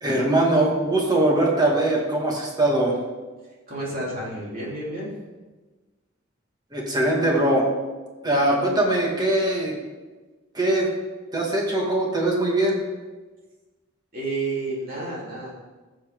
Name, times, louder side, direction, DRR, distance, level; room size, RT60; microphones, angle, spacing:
voice 1, 0.0-3.0 6.7-7.7 8.2-9.8 10.5-10.9 11.3-12.8, right 1 dB, 20° right, -2 dB, 2.2 m, -21 dB
voice 2, 3.7-5.2 14.1-15.5, right 2 dB, 45° right, -6 dB, 3.8 m, -30 dB
15.0 x 7.6 x 3.9 m, 1.3 s
head